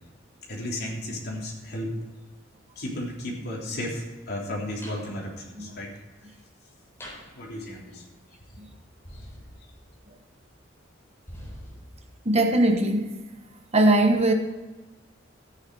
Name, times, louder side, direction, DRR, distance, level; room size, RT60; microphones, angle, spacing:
voice 1, 0.5-2.0 2.8-5.9 7.3-8.1 9.1-9.2, left 1 dB, 55° left, 3.4 m, -34 dB
sound 1, 4.8-5.1 7.0-7.4 9.0-10.0 11.3-12.1, equal, 15° left, 4.1 m, -43 dB
voice 2, 12.2-13.2 13.7-14.3, right 1 dB, 30° right, 1.2 m, -20 dB
14.0 x 9.5 x 4.7 m
head